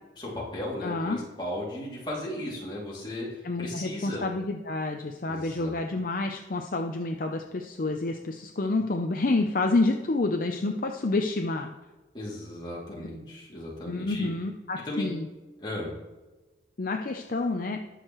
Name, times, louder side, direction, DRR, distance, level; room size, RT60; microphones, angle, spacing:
voice 1, 0.2-3.3 3.6-4.2 5.3-5.7 12.1-14.3 14.8-15.1 15.6-15.9, left 1 dB, 25° left, -5 dB, 2.6 m, -36 dB
voice 2, 0.8-1.2 3.4-11.7 13.0-13.1 13.9-15.3 16.8-17.8, left 2 dB, 50° left, 4 dB, 0.6 m, -28 dB
19.5 x 6.6 x 3.1 m, 1.2 s
head